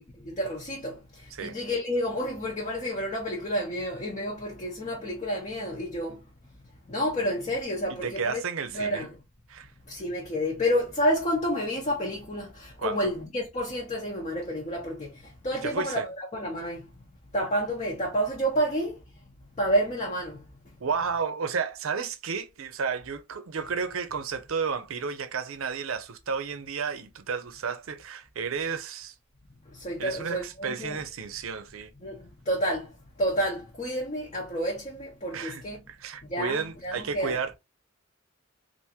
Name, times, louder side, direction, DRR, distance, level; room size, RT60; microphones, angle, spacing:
voice 1, 0.2-6.2 6.9-8.4 8.7-9.2 9.9-16.9 17.3-19.0 19.6-20.4 29.7-31.0 32.0-32.9 33.2-35.8 36.2-37.4, equal, 35° left, 0.7 m, -30 dB
voice 2, 7.9-9.1 9.5-9.7 12.8-13.0 15.6-16.0 20.8-29.1 30.0-31.9 35.3-35.6 35.9-37.6, right 5 dB, 80° right, 0.6 m, -32 dB
3.5 x 2.5 x 2.8 m
head